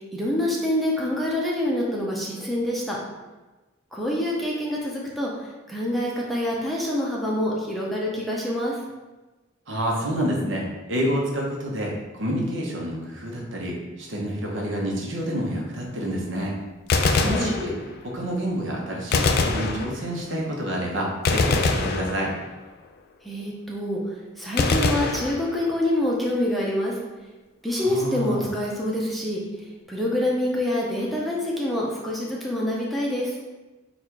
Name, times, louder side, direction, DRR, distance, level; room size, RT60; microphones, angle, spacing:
voice 1, 0.0-3.0 3.9-8.8 17.0-17.5 23.2-27.0 27.6-29.4 29.9-33.4, left 1 dB, ahead, -4 dB, 0.6 m, -26 dB
voice 2, 9.7-16.5 17.2-17.7 18.0-22.3 27.8-28.5, equal, 70° right, -2 dB, 0.9 m, -28 dB
Gunshot gunfire, 16.8-18.1 19.1-20.3 21.3-22.7 24.6-25.9, left 3 dB, 50° left, 0.3 m, -24 dB
4.1 x 2.4 x 4.5 m, 1.2 s
head